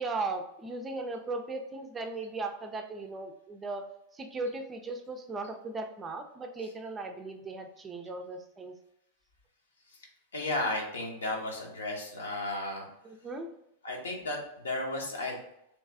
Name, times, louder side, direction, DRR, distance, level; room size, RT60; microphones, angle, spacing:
voice 1, 0.0-3.8 4.1-8.7 13.0-13.5, right 3 dB, 20° right, 5 dB, 0.4 m, -37 dB
voice 2, 10.3-12.9 13.8-15.4, left 2 dB, 70° left, 0 dB, 0.9 m, -34 dB
3.3 x 3.1 x 3.4 m, 0.79 s
figure-of-eight pair, 90°, 0 cm